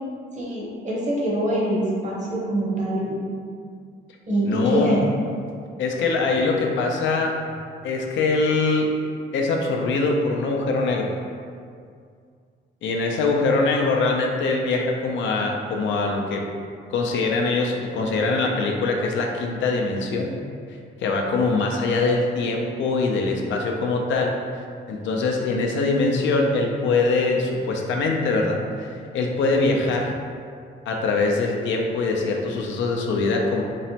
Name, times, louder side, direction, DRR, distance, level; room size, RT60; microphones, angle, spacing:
voice 1, 0.4-3.2 4.3-5.1, right 1 dB, 35° right, -5 dB, 0.8 m, -24 dB
voice 2, 4.5-5.0 5.8-7.3 7.8-8.9 9.3-11.1 12.8-16.4 16.9-20.3 21.0-30.1 30.9-33.6, left 3 dB, 75° left, 1 dB, 0.4 m, -23 dB
3.0 x 2.0 x 2.7 m, 2.2 s
cardioid pair, 90°, 20 cm